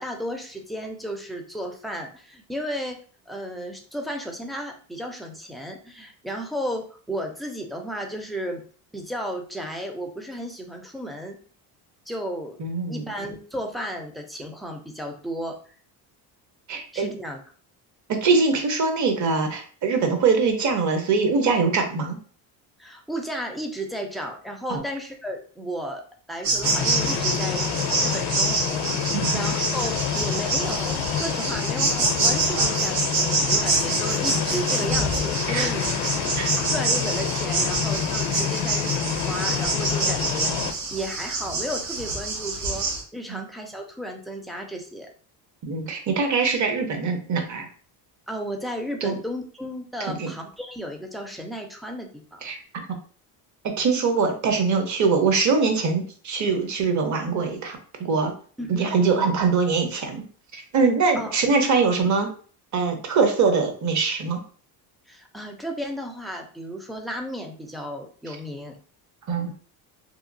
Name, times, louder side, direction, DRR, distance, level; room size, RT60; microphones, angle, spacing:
voice 1, 0.0-3.0 3.3-8.6 8.9-11.4 12.1-12.6 12.9-15.5 16.9-17.4 22.8-26.0 26.3-27.7 28.0-45.1 48.3-52.4 58.6-59.0 61.1-61.4 65.1-68.8, equal, ahead, 3 dB, 0.4 m, -34 dB
voice 2, 12.6-13.1 16.7-17.1 18.1-22.2 24.7-24.8 29.1-29.5 35.5-35.7 36.4-36.5 43.3-43.4 45.6-47.7 49.0-49.2 50.1-50.3 52.4-52.9 53.8-58.3 58.7-60.2 60.5-62.3 62.7-64.4 68.3-68.4 69.3-69.5, right 4 dB, 40° right, 5 dB, 0.8 m, -23 dB
sound 1, 26.4-43.0, right 3 dB, 80° right, 0.9 m, -26 dB
sound 2, 26.6-40.7, left 9 dB, 60° left, 0.5 m, -28 dB
2.9 x 2.3 x 2.5 m, 0.43 s
supercardioid pair, 90°, 45 cm